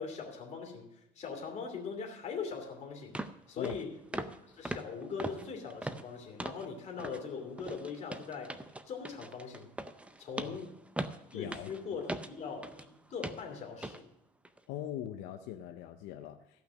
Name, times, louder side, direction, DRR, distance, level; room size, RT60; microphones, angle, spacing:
voice 1, 0.0-3.2 3.5-4.2 4.5-8.6 8.9-9.7 10.2-10.7 11.3-14.1, left 5 dB, 40° left, 2 dB, 2.8 m, -41 dB
sound 1, 2.5-2.6 3.1-3.4 3.6-3.8 4.1-4.4 4.6-6.7 7.0-7.2 7.6-12.9 13.2-13.5 13.8-14.0 14.4-14.6, right 2 dB, 5° right, 0.5 m, -40 dB
voice 2, 11.3-12.0 14.7-16.6, left 11 dB, 80° left, 6 dB, 0.7 m, -42 dB
15.0 x 5.9 x 6.3 m, 0.81 s
cardioid pair, 135°, 18 cm